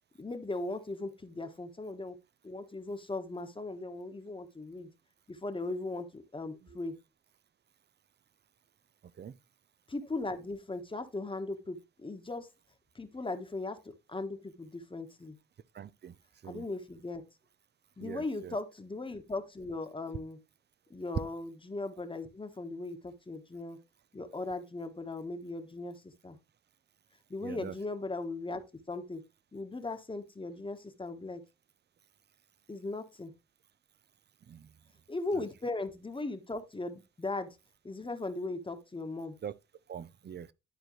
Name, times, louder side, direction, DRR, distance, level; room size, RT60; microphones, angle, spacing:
voice 1, 0.2-2.2 2.4-4.9 5.3-7.0 9.9-12.5 12.9-15.4 16.4-17.2 18.0-20.4 20.9-23.8 24.1-26.4 27.3-28.6 28.9-29.2 29.5-31.4 32.7-33.3 35.1-37.6 37.8-39.4, left 2 dB, 15° left, 1.3 m, -38 dB
voice 2, 15.7-16.1 16.4-16.6 18.0-18.5 27.4-27.7 34.5-34.7 39.4-39.5 39.9-40.5, right 8 dB, 35° right, 0.6 m, -43 dB
11.5 x 4.4 x 3.2 m
cardioid pair, 90°, 30 cm